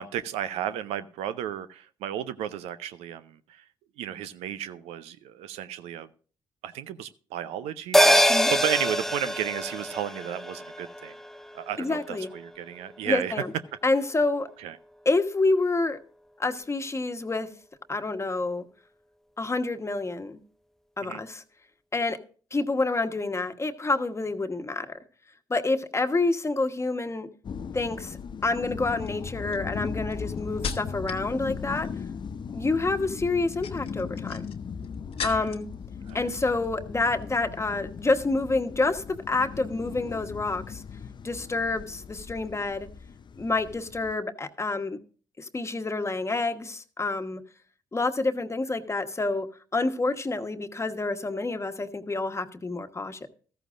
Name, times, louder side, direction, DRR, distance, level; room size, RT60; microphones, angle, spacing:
voice 1, 0.0-3.6 4.0-6.1 6.6-11.1 11.5-13.3 14.6-14.8 21.0-21.2 35.2-35.5 36.1-36.3, right 10 dB, 80° right, 13 dB, 0.6 m, -33 dB
sound 1, 7.9-12.7 13.0-13.1, equal, 5° left, 0.5 m, -25 dB
voice 2, 11.8-12.3 13.1-13.5 13.8-14.5 15.0-16.0 16.4-17.5 17.9-18.6 19.4-20.4 21.0-21.4 21.9-22.2 22.5-25.0 25.5-27.3 27.7-28.2 28.4-31.9 32.5-34.5 35.2-35.7 36.1-40.8 41.2-42.9 43.4-45.0 45.4-47.4 47.9-49.5 49.7-53.3, left 3 dB, 25° left, 7 dB, 1.2 m, -28 dB
sound 2, 27.4-44.1, left 6 dB, 45° left, 0.6 m, -38 dB
sound 3, 27.8-28.2 28.9-31.3 31.6-32.1 33.3-35.7 36.1-36.7 37.0-37.2, left 6 dB, 65° left, 1.1 m, -39 dB
14.0 x 13.5 x 2.5 m, 0.40 s
hypercardioid pair, 50°, 11 cm